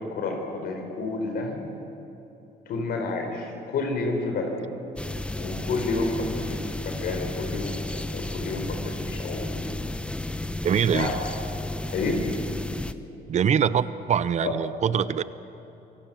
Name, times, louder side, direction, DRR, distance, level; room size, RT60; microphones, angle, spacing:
voice 1, 0.0-1.6 2.7-4.5 5.4-9.7 10.9-11.4 11.9-12.2 14.4-14.5, left 3 dB, 65° left, 3 dB, 4.4 m, -30 dB
sound 1, 5.0-12.9, left 1 dB, 5° left, 0.8 m, -33 dB
voice 2, 10.6-11.1 13.3-15.2, right 8 dB, 45° right, 16 dB, 0.8 m, -23 dB
26.0 x 18.0 x 7.6 m, 3.0 s
cardioid pair, 110°, 17 cm